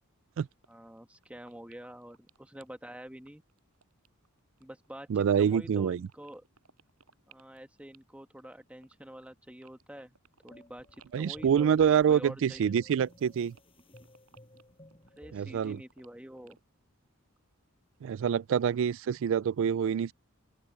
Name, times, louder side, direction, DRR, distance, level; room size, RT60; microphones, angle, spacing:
sound 1, 0.6-0.7 1.0-16.6, right 6 dB, 85° right, 7.2 m, -62 dB
voice 1, 0.7-3.4 4.6-6.4 7.3-10.2 10.4-12.8 15.2-16.6, right 1 dB, 5° right, 1.5 m, -47 dB
voice 2, 5.1-6.1 11.1-13.5 15.3-15.8 18.0-20.1, right 8 dB, 60° right, 0.3 m, -26 dB
sound 2, 10.5-15.7, left 1 dB, 25° left, 6.7 m, -56 dB
head